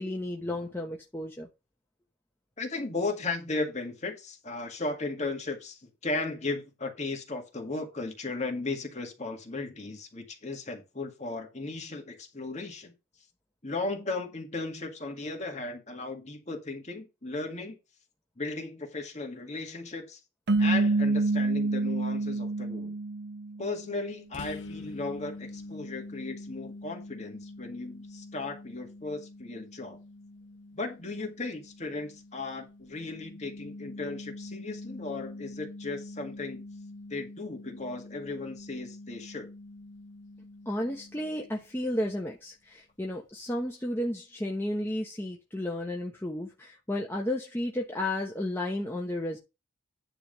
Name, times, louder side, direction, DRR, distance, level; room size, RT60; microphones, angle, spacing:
voice 1, 0.0-1.5 40.7-49.4, left 1 dB, 10° left, 1.0 m, -33 dB
voice 2, 2.6-12.9 13.6-17.8 18.4-20.2 20.6-23.0 23.6-30.0 30.8-36.6 37.1-39.5, left 3 dB, 35° left, 2.0 m, -36 dB
sound 1, 20.5-23.8, right 3 dB, 55° right, 0.6 m, -27 dB
sound 2, 24.3-41.8, left 2 dB, 65° left, 1.0 m, -45 dB
10.0 x 3.5 x 6.7 m
head